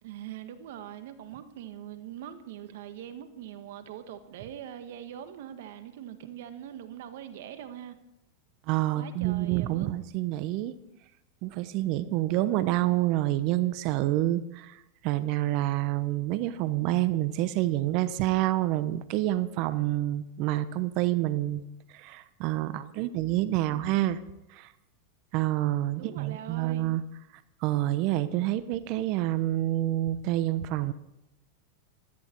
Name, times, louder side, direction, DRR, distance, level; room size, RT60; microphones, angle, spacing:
voice 1, 0.0-8.0 8.9-9.9 26.0-26.9, right 10 dB, 70° right, 9 dB, 1.7 m, -42 dB
voice 2, 8.7-10.7 11.4-14.7 15.0-21.6 22.0-24.2 24.6-24.7 25.3-27.0 27.6-30.9, right 15 dB, 55° right, 14 dB, 1.0 m, -27 dB
16.0 x 14.0 x 4.6 m, 0.86 s
hypercardioid pair, 110°, 0 cm